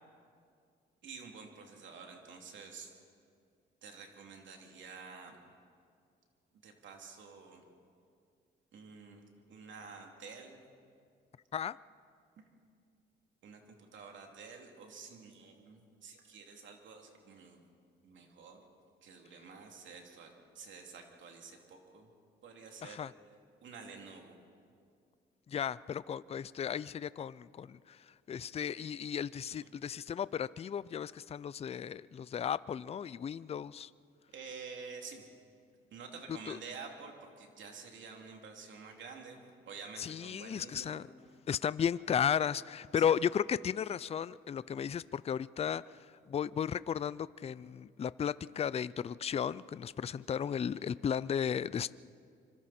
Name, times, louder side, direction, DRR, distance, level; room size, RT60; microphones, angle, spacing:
voice 1, 1.0-2.9 3.8-5.4 6.6-7.6 8.7-9.2 9.5-10.6 12.4-12.5 13.4-17.6 18.0-18.7 19.0-22.1 22.4-23.0 23.6-24.3 34.3-35.3 35.9-39.4 39.7-41.0 43.0-43.1, right 5 dB, 70° right, 2 dB, 3.0 m, -49 dB
voice 2, 22.8-23.1 25.5-28.0 28.3-33.9 36.5-36.6 40.0-41.1 41.5-45.8 46.3-51.9, left 8 dB, 30° left, 18 dB, 0.4 m, -34 dB
25.5 x 25.5 x 4.3 m, 2.3 s
cardioid pair, 90°, 20 cm